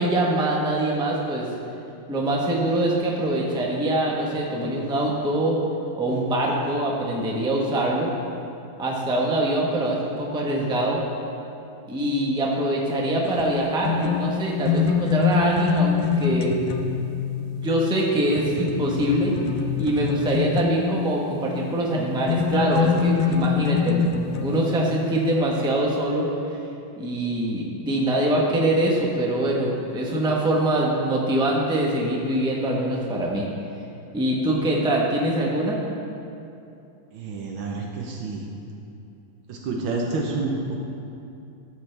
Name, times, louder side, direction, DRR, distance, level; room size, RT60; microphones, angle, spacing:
voice 1, 0.0-1.5 2.1-5.6 6.0-8.1 8.8-11.0 11.9-16.7 17.3-19.3 19.8-24.1 24.4-26.3 27.0-33.5 34.1-35.8, right 1 dB, 5° right, -2 dB, 0.4 m, -24 dB
sound 1, 13.2-21.9 22.3-25.4, left 7 dB, 75° left, 1.2 m, -25 dB
voice 2, 37.1-38.5 39.5-40.8, right 3 dB, 80° right, 0 dB, 1.6 m, -29 dB
12.5 x 7.9 x 3.3 m, 2.7 s
omnidirectional pair, 2.2 m